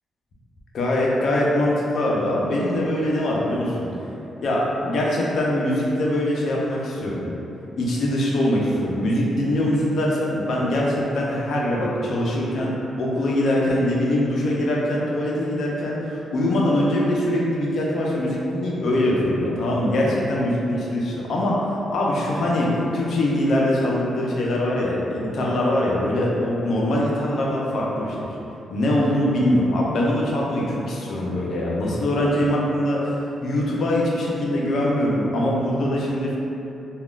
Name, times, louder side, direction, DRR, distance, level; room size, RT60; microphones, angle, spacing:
voice 1, 0.7-3.9 4.4-7.2 7.8-12.7 13.0-28.3 28.7-33.2 33.4-36.4, left 1 dB, 65° left, -4 dB, 0.6 m, -22 dB
3.5 x 2.3 x 2.3 m, 2.9 s
cardioid pair, 95°, 0 cm